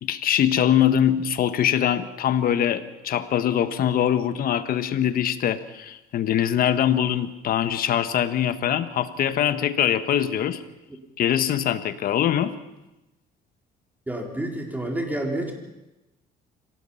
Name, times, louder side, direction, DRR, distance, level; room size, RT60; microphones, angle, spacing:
voice 1, 0.0-10.6 11.2-12.5, left 10 dB, 60° left, 11 dB, 1.4 m, -23 dB
voice 2, 14.1-15.5, right 1 dB, 10° right, 1 dB, 4.5 m, -29 dB
25.5 x 17.5 x 5.7 m, 0.98 s
cardioid pair, 110°, 17 cm